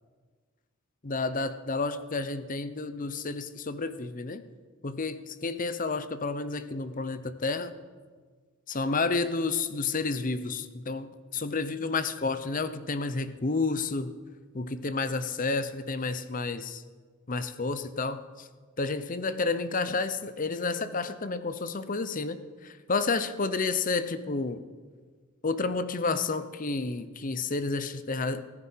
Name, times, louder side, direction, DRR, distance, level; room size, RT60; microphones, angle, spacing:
voice 1, 1.0-4.4 4.8-7.7 8.7-14.2 14.5-16.8 17.3-18.5 18.8-24.6 25.4-28.4, left 3 dB, 40° left, 12 dB, 0.8 m, -30 dB
15.5 x 14.0 x 5.8 m, 1.5 s
head